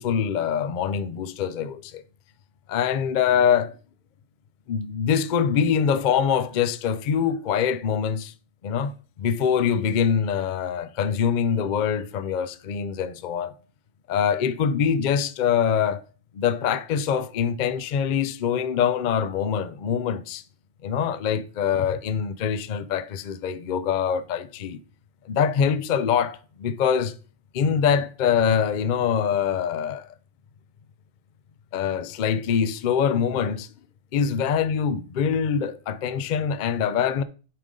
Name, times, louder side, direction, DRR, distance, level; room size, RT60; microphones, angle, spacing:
voice 1, 0.0-2.0 2.7-3.7 4.7-8.3 8.6-13.5 14.1-16.0 16.3-20.4 20.8-24.8 25.2-27.1 27.5-30.1 31.7-33.7 34.1-37.2, left 7 dB, 55° left, 0.5 m, -24 dB
8.6 x 5.3 x 3.7 m
omnidirectional pair, 1.3 m